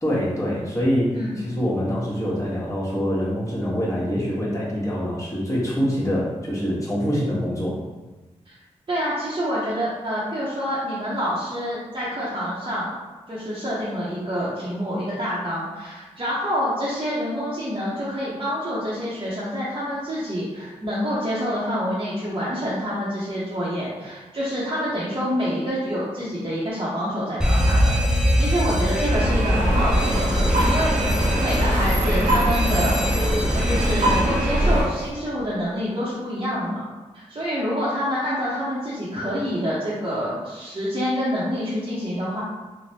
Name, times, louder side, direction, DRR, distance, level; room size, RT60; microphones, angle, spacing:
voice 1, 0.0-7.8, equal, 25° left, -7 dB, 1.2 m, -25 dB
voice 2, 8.9-12.9 13.3-27.9 28.4-31.1 31.4-33.2 33.5-36.9 37.1-42.4, equal, 40° right, -9 dB, 0.8 m, -27 dB
Alarm, 27.4-35.1, equal, 5° right, 0.4 m, -25 dB
sound 1, 29.1-34.8, equal, 85° right, 0.7 m, -21 dB
3.2 x 2.1 x 2.7 m, 1.2 s
cardioid pair, 50°, 13 cm